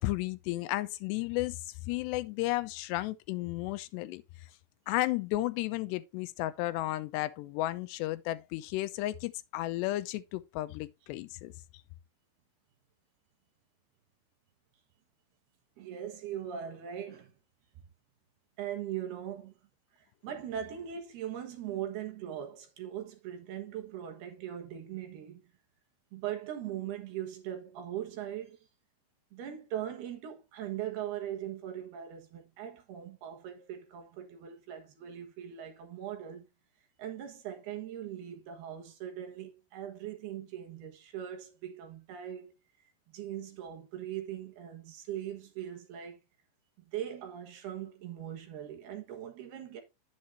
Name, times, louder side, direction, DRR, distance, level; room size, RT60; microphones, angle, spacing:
voice 1, 0.0-1.6 1.8-4.2 4.9-11.5, left 17 dB, 85° left, 2.5 m, -33 dB
voice 2, 15.8-17.3 18.6-19.5 19.9-25.5 26.1-28.7 29.3-36.5 37.0-42.5 43.1-46.2 46.8-49.8, right 10 dB, 65° right, 3.1 m, -40 dB
10.0 x 7.6 x 2.6 m
omnidirectional pair, 5.5 m